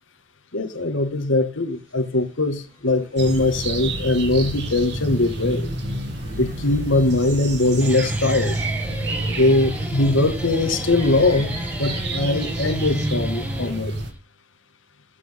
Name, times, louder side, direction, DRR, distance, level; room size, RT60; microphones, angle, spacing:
voice 1, 0.5-5.7 6.4-8.6 9.3-13.9, left 2 dB, 80° left, 2.0 m, -21 dB
sound 1, 1.6-12.1, right 1 dB, 30° right, 3.8 m, -46 dB
sound 2, 3.2-14.1, right 2 dB, 60° right, 2.4 m, -29 dB
Guitar, 7.6-14.2, equal, 10° right, 1.3 m, -33 dB
14.5 x 8.7 x 3.6 m
head